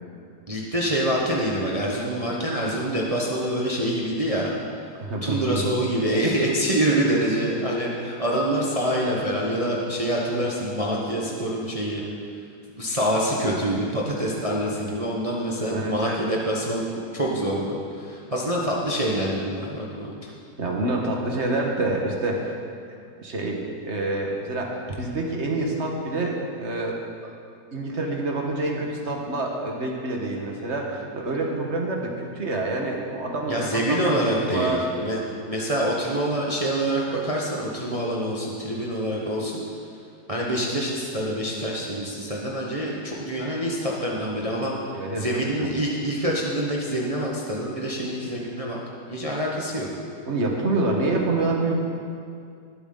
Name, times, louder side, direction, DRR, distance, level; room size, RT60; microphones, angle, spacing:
voice 1, 0.5-4.5 5.2-12.0 12.8-20.1 33.5-35.2 35.4-39.6 40.3-44.8 45.1-48.8 49.1-49.9, right 1 dB, 25° right, -3 dB, 1.1 m, -26 dB
voice 2, 5.0-5.6 15.7-16.2 20.6-22.5 23.2-27.0 27.7-34.8 35.3-35.4 44.9-45.3 45.6-45.7 50.3-51.7, right 2 dB, 45° right, 0 dB, 1.8 m, -27 dB
20.0 x 8.1 x 4.0 m, 2.3 s
omnidirectional pair, 1.8 m